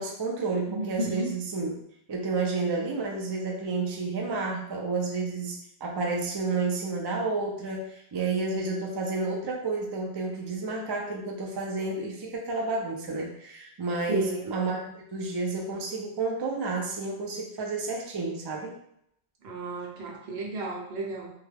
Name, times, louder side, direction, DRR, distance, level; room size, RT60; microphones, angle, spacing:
voice 1, 0.0-1.8 2.1-5.6 5.8-18.7, right 3 dB, 45° right, -1 dB, 0.3 m, -30 dB
voice 2, 0.7-1.3 14.1-14.6 19.4-21.3, right 2 dB, 75° right, -1 dB, 0.9 m, -33 dB
2.3 x 2.2 x 3.3 m, 0.74 s
omnidirectional pair, 1.1 m